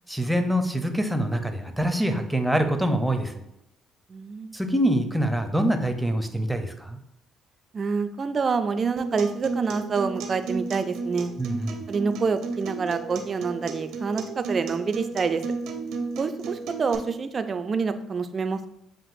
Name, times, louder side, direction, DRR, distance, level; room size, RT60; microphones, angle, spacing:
voice 1, 0.1-3.4 4.5-7.0 11.4-11.8, right 1 dB, 5° right, 6 dB, 0.6 m, -25 dB
voice 2, 4.1-4.5 7.7-11.3 11.9-15.4 16.2-18.7, right 5 dB, 40° right, 9 dB, 0.4 m, -27 dB
Acoustic guitar, 9.0-17.0, right 4 dB, 80° right, 0.7 m, -34 dB
7.4 x 2.5 x 2.5 m, 0.81 s
supercardioid pair, 80°, 0 cm